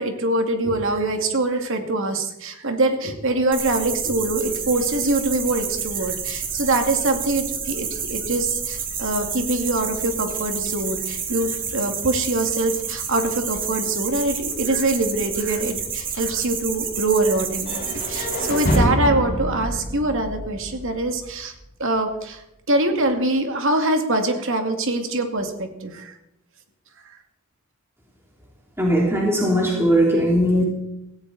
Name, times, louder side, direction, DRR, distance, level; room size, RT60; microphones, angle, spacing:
voice 1, 0.0-21.5 21.8-22.4 22.7-26.1, right 2 dB, 65° right, 5 dB, 2.4 m, -24 dB
sound 1, 3.5-18.8, right 6 dB, 40° right, 2.5 m, -29 dB
sound 2, 17.6-21.6, equal, 40° left, 7.4 m, -26 dB
voice 2, 28.8-30.6, equal, 10° right, -2 dB, 3.2 m, -19 dB
17.5 x 16.0 x 4.2 m, 0.84 s
head